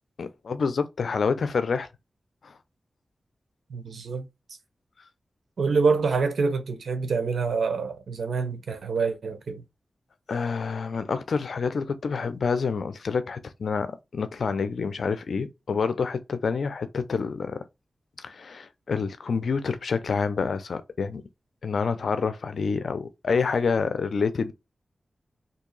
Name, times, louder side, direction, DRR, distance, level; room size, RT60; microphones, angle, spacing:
voice 1, 0.2-1.9 2.4-2.6 10.3-17.6 18.2-21.2 21.6-24.5, left 5 dB, 80° left, 0.5 m, -27 dB
voice 2, 3.7-4.6 5.6-9.6, right 4 dB, 80° right, 0.7 m, -26 dB
2.8 x 2.7 x 3.9 m
cardioid pair, 45°, 0 cm